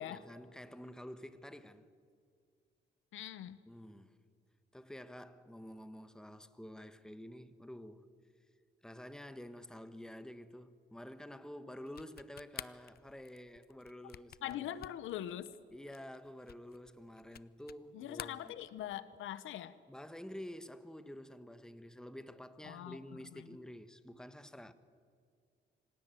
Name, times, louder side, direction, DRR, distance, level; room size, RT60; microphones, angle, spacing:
voice 1, 0.1-1.9 3.7-4.2 4.7-8.1 8.8-14.9 15.7-18.6 19.9-24.7, left 1 dB, 5° left, 1.3 m, -49 dB
voice 2, 3.1-3.6 14.4-15.5 17.9-19.8 22.6-23.0 23.3-23.5, left 12 dB, 85° left, 1.0 m, -42 dB
sound 1, 11.9-17.9 18.1-19.1, left 10 dB, 50° left, 0.7 m, -51 dB
25.5 x 17.0 x 9.2 m
cardioid pair, 90°, 20 cm